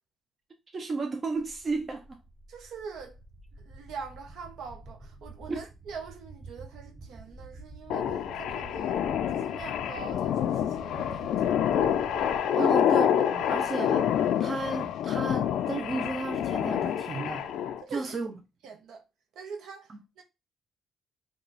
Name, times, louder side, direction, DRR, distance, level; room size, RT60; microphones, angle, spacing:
voice 1, 0.7-2.2 5.5-5.7 12.5-14.1 14.4-17.4 17.9-18.3, right 3 dB, 40° right, 0.6 m, -33 dB
sound 1, 1.4-12.4, right 2 dB, 15° right, 1.0 m, -48 dB
voice 2, 2.5-3.2 3.5-11.3 11.6-11.8 12.6-12.7 17.8-18.2 18.6-19.0 19.3-20.2, right 5 dB, 80° right, 0.8 m, -43 dB
sound 2, 7.9-17.8, left 9 dB, 80° left, 0.3 m, -27 dB
2.9 x 2.3 x 3.9 m
cardioid pair, 90°, 0 cm